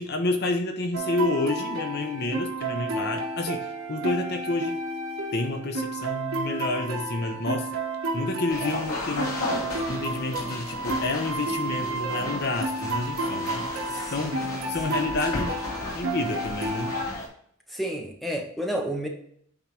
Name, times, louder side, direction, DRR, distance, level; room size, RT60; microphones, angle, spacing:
voice 1, 0.0-4.8 5.3-7.7 8.1-9.4 9.9-13.7 14.1-15.5 15.9-16.9, left 2 dB, 50° left, 5 dB, 0.8 m, -29 dB
sound 1, 0.9-17.1, right 2 dB, 75° right, 1.3 m, -31 dB
sound 2, 8.5-17.3, left 2 dB, 85° left, 2.5 m, -34 dB
voice 2, 13.9-15.0 17.7-19.1, right 1 dB, ahead, 1 dB, 1.0 m, -32 dB
8.8 x 3.7 x 4.3 m, 0.66 s
head